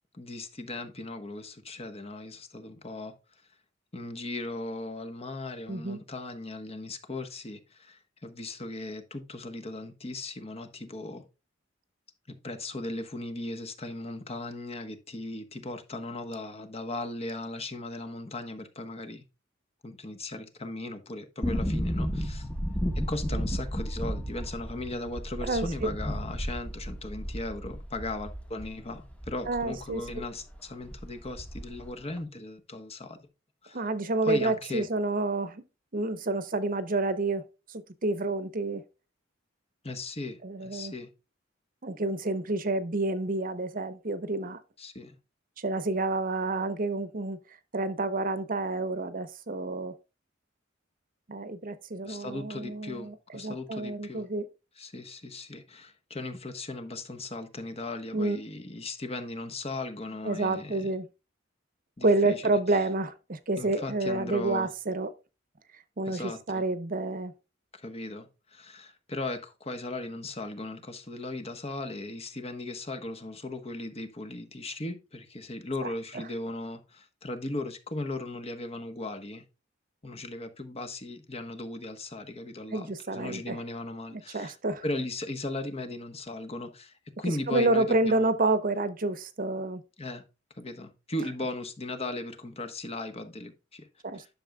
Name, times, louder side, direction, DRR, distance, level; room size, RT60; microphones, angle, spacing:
voice 1, 0.1-3.1 3.9-11.2 12.4-19.2 19.8-22.5 22.9-33.3 33.6-33.8 34.2-34.9 39.8-41.1 44.8-45.1 52.1-54.3 54.8-60.9 62.0-62.5 63.6-64.7 66.0-66.6 67.7-79.4 80.0-84.6 84.8-88.3 90.0-90.2 90.6-93.9 94.1-94.3, left 2 dB, 30° left, 1.3 m, -37 dB
voice 2, 5.7-6.0 25.4-25.9 29.5-30.0 33.7-35.6 35.9-38.8 40.4-40.9 41.8-44.6 45.6-47.4 47.7-49.9 51.3-54.5 58.1-58.4 60.2-61.1 62.0-65.1 66.0-67.3 82.7-83.6 84.1-84.8 87.5-89.8 94.0-94.3, right 2 dB, 45° right, 0.9 m, -29 dB
sound 1, 21.4-30.3 30.5-30.6 30.9-31.9 32.2-32.3, equal, 5° left, 1.2 m, -33 dB
11.0 x 6.6 x 2.4 m
head